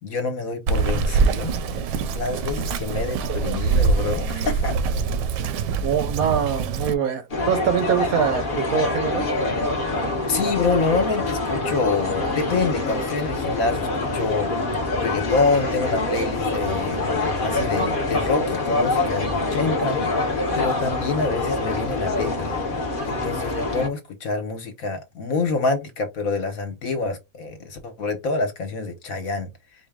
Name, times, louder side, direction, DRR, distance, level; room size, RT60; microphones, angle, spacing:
voice 1, 0.0-4.8 10.2-14.5 15.0-17.0 17.4-20.3 20.6-22.6 23.0-29.5, left 3 dB, 60° left, 1.2 m, -26 dB
Bird vocalization bird call bird song, 0.7-6.9, right 4 dB, 85° right, 1.2 m, -24 dB
voice 2, 5.8-9.3, right 8 dB, 65° right, 1.0 m, -24 dB
sound 1, 7.3-23.9, left 2 dB, 40° left, 0.8 m, -25 dB
sound 2, 12.5-23.6, left 8 dB, 80° left, 1.3 m, -39 dB
4.6 x 2.2 x 3.5 m
omnidirectional pair, 1.9 m